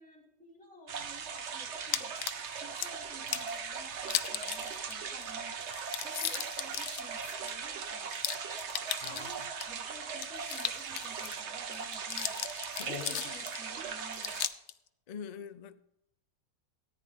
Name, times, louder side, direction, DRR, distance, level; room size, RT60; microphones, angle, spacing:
voice 1, 0.0-2.1 2.6-5.6 6.0-8.1 9.1-12.4 12.8-14.3, equal, 5° left, 3.2 m, -53 dB
sound 1, 0.9-14.5, right 6 dB, 55° right, 1.1 m, -39 dB
sound 2, 1.9-2.9 3.3-3.6 4.0-4.9 5.2-5.3 5.6-9.7 10.1-11.4 11.7-13.6 14.1-14.7, left 11 dB, 70° left, 1.0 m, -37 dB
voice 2, 12.8-13.2 15.1-15.8, left 7 dB, 90° left, 0.3 m, -43 dB
14.0 x 9.6 x 3.7 m
omnidirectional pair, 1.5 m